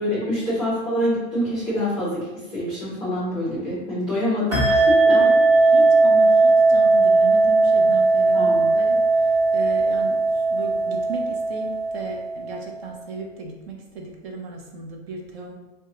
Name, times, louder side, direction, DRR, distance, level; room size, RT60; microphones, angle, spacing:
voice 1, 0.0-5.1 8.3-8.8, left 1 dB, ahead, -10 dB, 0.5 m, -26 dB
sound 1, 4.5-12.6, right 3 dB, 25° right, 1.0 m, -18 dB
voice 2, 5.1-15.5, right 3 dB, 45° right, 0 dB, 0.7 m, -36 dB
4.7 x 2.2 x 2.9 m, 1.1 s
supercardioid pair, 180°, 41 cm